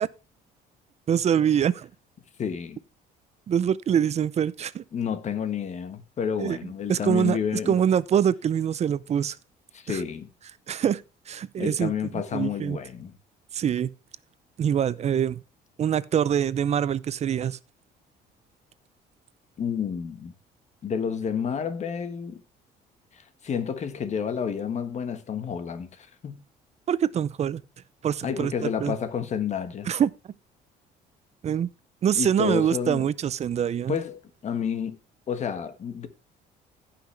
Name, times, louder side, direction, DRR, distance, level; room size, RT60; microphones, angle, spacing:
voice 1, 1.1-1.9 3.5-4.8 6.4-6.6 6.9-7.4 7.7-9.4 9.9-10.0 10.7-11.0 11.3-12.8 13.5-13.9 14.6-15.4 15.8-17.6 26.9-27.6 28.0-28.5 28.8-28.9 29.9-30.1 31.4-31.7 32.0-34.0, right 9 dB, 40° right, 0.6 m, -24 dB
voice 2, 2.4-2.8 4.9-7.8 9.7-10.3 11.6-13.1 19.6-20.3 20.8-22.4 23.1-26.4 28.2-29.9 32.1-33.1 33.9-35.0 35.3-36.1, left 7 dB, 45° left, 1.5 m, -30 dB
15.5 x 5.9 x 3.4 m
cardioid pair, 110°, 17 cm